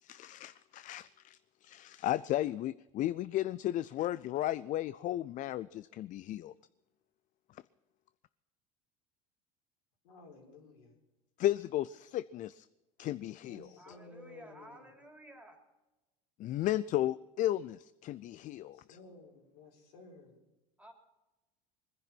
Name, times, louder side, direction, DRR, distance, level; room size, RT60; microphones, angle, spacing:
voice 1, 0.0-6.5 11.4-12.7 13.0-13.7 16.4-18.8, left 13 dB, 40° left, 17 dB, 0.4 m, -34 dB
voice 2, 10.0-11.0 13.4-14.9 18.7-20.4, left 3 dB, 80° left, 1 dB, 4.7 m, -54 dB
voice 3, 13.8-15.6 20.8-20.9, right 1 dB, 5° right, 3 dB, 3.4 m, -53 dB
20.5 x 10.5 x 6.0 m, 1.1 s
supercardioid pair, 100°, 20 cm